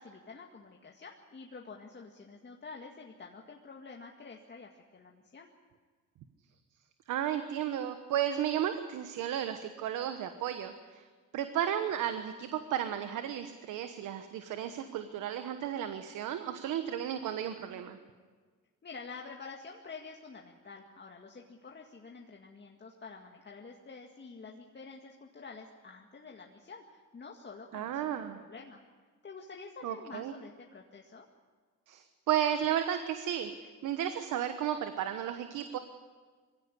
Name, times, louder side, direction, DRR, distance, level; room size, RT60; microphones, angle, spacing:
voice 1, 0.0-5.5 18.8-28.8 29.2-31.3, left 4 dB, 35° left, 1 dB, 2.1 m, -48 dB
voice 2, 7.1-11.0 11.3-18.0 27.7-28.4 29.8-30.3 31.9-35.8, right 10 dB, 85° right, 9 dB, 1.3 m, -33 dB
22.0 x 16.5 x 10.0 m, 1.5 s
cardioid pair, 90°, 30 cm